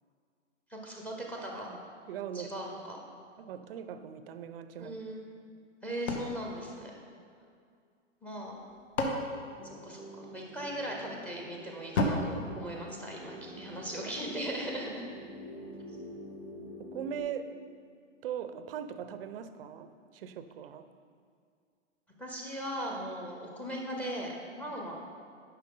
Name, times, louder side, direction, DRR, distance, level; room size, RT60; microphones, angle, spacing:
voice 1, 0.7-1.7 2.3-3.0 4.8-5.2 5.8-6.9 8.2-8.6 9.6-15.0 22.2-25.0, equal, 5° left, 0 dB, 0.7 m, -39 dB
voice 2, 2.1-2.5 3.4-4.9 7.2-7.3 12.3-12.7 13.3-13.7 14.1-14.4 16.8-17.5 18.2-20.8 24.5-24.7, right 8 dB, 50° right, 10 dB, 0.6 m, -41 dB
sound 1, 6.1-7.6 8.5-10.4 11.9-13.6, left 1 dB, 60° left, 1.2 m, -35 dB
sound 2, 9.6-17.2, left 1 dB, 75° left, 2.2 m, -47 dB
10.0 x 5.7 x 3.8 m, 2.2 s
hypercardioid pair, 140°, 38 cm